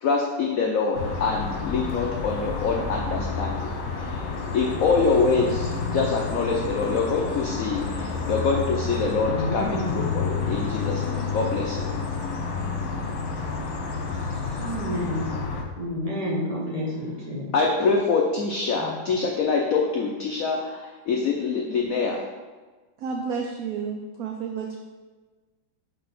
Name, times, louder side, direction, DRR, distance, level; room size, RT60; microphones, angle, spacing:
voice 1, 0.0-4.2 4.5-11.9 17.5-22.3, left 4 dB, 80° left, 0 dB, 0.7 m, -25 dB
sound 1, 0.9-15.6, left 4 dB, 65° left, 1.5 m, -30 dB
voice 2, 9.2-10.0 14.6-15.3 15.8-17.5 18.8-18.9, left 1 dB, 30° right, -5 dB, 0.7 m, -29 dB
voice 3, 23.0-24.8, right 5 dB, 85° right, 2 dB, 0.8 m, -31 dB
4.6 x 4.0 x 5.5 m, 1.3 s
omnidirectional pair, 2.2 m